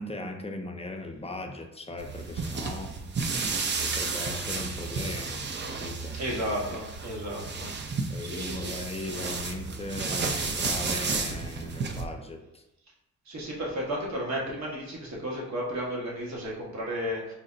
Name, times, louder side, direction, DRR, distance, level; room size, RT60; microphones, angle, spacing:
voice 1, 0.0-2.9 3.8-5.5 5.8-6.2 8.1-12.6, left 2 dB, 20° left, 3 dB, 0.5 m, -38 dB
sound 1, 2.0-12.1, right 4 dB, 35° right, 0.5 m, -32 dB
voice 2, 6.2-7.7 8.3-8.7 13.3-17.3, equal, 65° right, -3 dB, 1.4 m, -33 dB
4.0 x 2.1 x 3.8 m, 0.92 s
cardioid pair, 70°, 30 cm